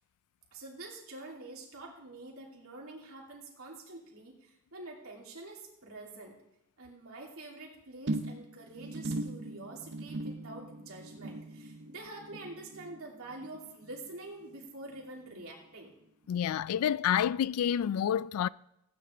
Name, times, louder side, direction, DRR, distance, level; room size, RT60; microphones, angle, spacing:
voice 1, 0.5-6.3 6.8-15.9, right 2 dB, 85° right, 2.9 m, -46 dB
sound 1, 8.1-14.7 14.9-15.3 15.7-15.8, right 2 dB, 55° right, 0.7 m, -40 dB
voice 2, 16.3-18.5, left 9 dB, 90° left, 0.3 m, -28 dB
15.5 x 9.6 x 3.4 m
head